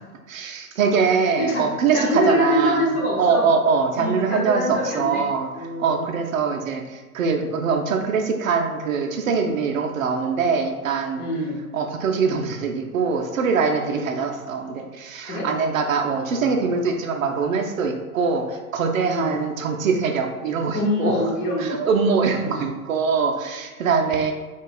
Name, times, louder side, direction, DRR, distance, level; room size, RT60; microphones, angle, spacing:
voice 1, 0.3-2.8 3.2-5.5 5.8-11.3 11.7-21.2 21.6-24.3, right 5 dB, 60° right, 3 dB, 0.5 m, -23 dB
voice 2, 1.9-3.4 4.0-5.3 5.5-6.1 7.3-7.5 11.2-11.6 13.8-14.1 15.3-15.5 16.1-16.7 19.0-19.3 20.7-21.8, left 1 dB, 20° left, -5 dB, 0.6 m, -25 dB
2.3 x 2.3 x 3.7 m, 1.3 s
figure-of-eight pair, 100°, 45 cm